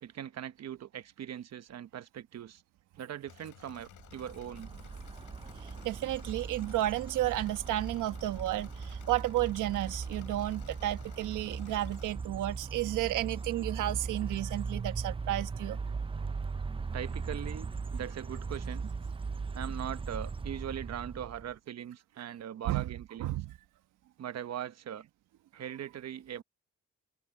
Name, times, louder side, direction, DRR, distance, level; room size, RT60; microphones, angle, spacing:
voice 1, 0.0-2.6 3.0-4.7 16.9-18.9 19.5-23.4 24.2-25.1 25.5-26.4, right 10 dB, 60° right, 1.1 m, -41 dB
Engine / Mechanisms, 3.3-12.1, left 13 dB, 80° left, 7.8 m, -55 dB
sound 1, 3.9-21.5, right 4 dB, 20° right, 0.5 m, -39 dB
voice 2, 5.8-15.8 22.7-22.8 23.2-23.5, right 15 dB, 85° right, 1.3 m, -32 dB
cardioid pair, 90°, 30 cm